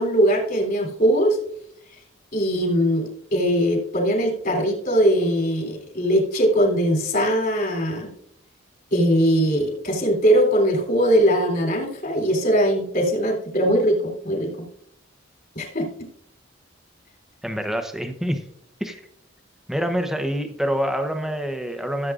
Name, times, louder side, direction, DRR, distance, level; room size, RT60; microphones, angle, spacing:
voice 1, 0.0-1.4 2.3-8.1 8.9-14.5 15.5-16.1, equal, 45° left, 0 dB, 3.4 m, -21 dB
voice 2, 17.4-18.4 18.8-19.0 19.7-22.1, equal, ahead, 6 dB, 0.9 m, -26 dB
15.5 x 8.2 x 2.5 m, 0.68 s
head